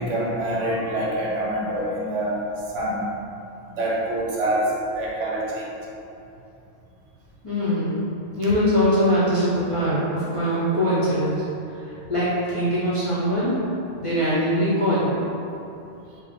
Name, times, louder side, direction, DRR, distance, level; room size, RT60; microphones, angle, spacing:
voice 1, 0.0-2.5 2.7-3.0 3.8-5.7, right 1 dB, 75° right, -4 dB, 1.0 m, -25 dB
voice 2, 7.4-8.0 8.4-11.4 11.8-13.6 14.0-15.2, equal, 35° left, -10 dB, 0.5 m, -22 dB
3.7 x 2.0 x 3.6 m, 2.8 s
omnidirectional pair, 1.3 m